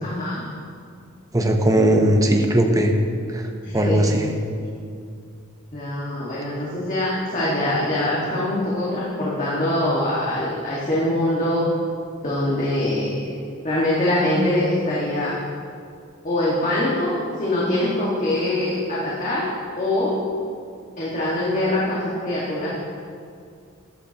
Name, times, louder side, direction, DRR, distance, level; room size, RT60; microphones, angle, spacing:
voice 1, 0.0-0.4 3.6-4.1 5.7-11.7 12.2-13.2 13.6-15.3 16.2-19.5 19.8-20.2 21.0-22.7, left 1 dB, 35° left, -7 dB, 1.7 m, -23 dB
voice 2, 1.3-2.9 3.3-3.5 3.7-4.3, right 1 dB, 15° right, 3 dB, 0.8 m, -18 dB
13.0 x 11.0 x 2.9 m, 2.3 s
head